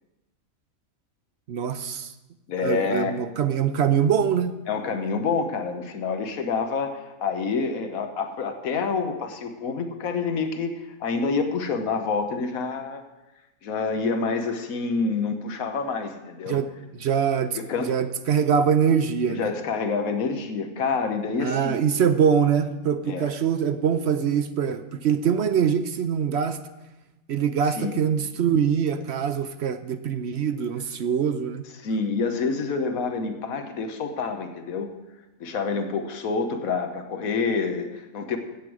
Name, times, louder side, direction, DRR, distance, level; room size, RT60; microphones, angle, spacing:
voice 1, 1.5-2.1 2.6-4.5 16.5-16.7 17.0-17.6 17.9-19.5 21.4-26.6 27.3-31.6, right 7 dB, 60° right, 10 dB, 0.8 m, -23 dB
voice 2, 2.5-3.1 4.7-13.0 13.6-16.6 17.5-18.0 19.3-21.9 23.0-23.3 27.7-28.0 31.8-34.9 35.4-38.4, left 4 dB, 80° left, 7 dB, 1.5 m, -27 dB
15.5 x 7.9 x 4.8 m, 1.0 s
omnidirectional pair, 1.5 m